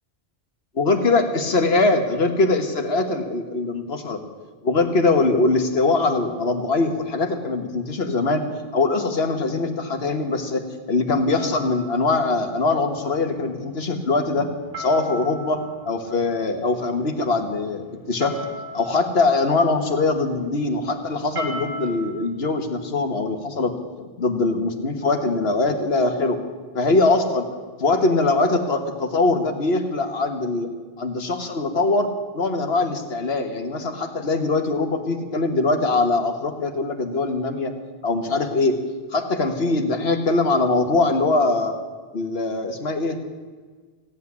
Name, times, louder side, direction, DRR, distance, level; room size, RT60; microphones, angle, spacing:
voice 1, 0.8-4.2 4.6-8.4 8.7-14.5 14.8-18.5 18.7-26.4 26.7-27.5 27.8-30.7 31.0-32.1 32.3-37.7 38.0-38.8 39.1-41.7 42.1-43.2, left 3 dB, 80° left, 6 dB, 1.7 m, -22 dB
sound 1, 11.4-22.1, equal, 55° right, 3.8 m, -39 dB
16.0 x 8.3 x 9.7 m, 1.5 s
omnidirectional pair, 1.0 m